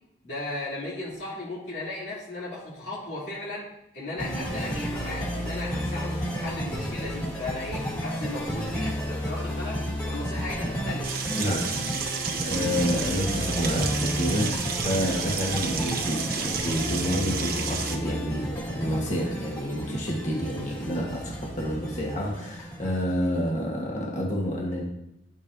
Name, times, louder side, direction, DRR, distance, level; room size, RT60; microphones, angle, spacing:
voice 1, 0.2-3.7 3.9-9.8 10.0-11.1 22.3-22.4, left 2 dB, 70° left, -8 dB, 3.1 m, -36 dB
sound 1, 4.2-23.5, equal, 25° left, 2.5 m, -32 dB
sound 2, 11.0-18.0, right 6 dB, 55° right, 1.0 m, -32 dB
voice 2, 11.4-11.7 12.3-24.8, equal, 40° left, -3 dB, 1.4 m, -29 dB
11.0 x 7.0 x 2.7 m, 0.84 s
head